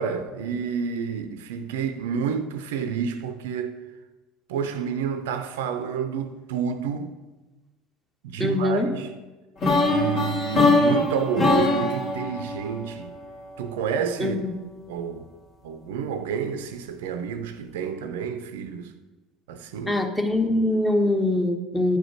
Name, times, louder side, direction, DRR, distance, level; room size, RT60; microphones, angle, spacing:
voice 1, 0.0-3.8 4.5-7.1 8.2-9.1 9.8-13.1 13.6-14.3 14.9-15.3 15.6-18.9 19.5-20.0, right 7 dB, 65° right, 0.6 m, -29 dB
voice 2, 8.4-8.9 14.2-14.5 19.8-22.0, left 1 dB, 10° left, 1.1 m, -23 dB
sound 1, 9.6-13.6, left 3 dB, 45° left, 2.2 m, -22 dB
9.2 x 5.0 x 5.9 m
figure-of-eight pair, 65°, 0 cm